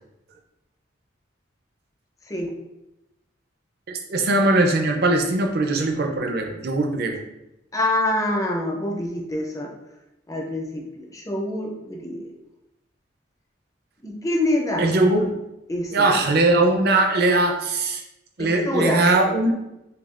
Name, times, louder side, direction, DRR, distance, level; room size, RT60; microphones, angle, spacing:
voice 1, 3.9-7.2 14.8-15.4 15.9-18.0 18.4-19.5, right 2 dB, 50° right, 3 dB, 0.6 m, -20 dB
voice 2, 7.7-9.7 10.3-12.3 14.0-14.9 15.7-16.1 18.4-19.0, left 1 dB, 15° left, 0 dB, 0.6 m, -26 dB
6.7 x 2.3 x 2.5 m, 0.92 s
head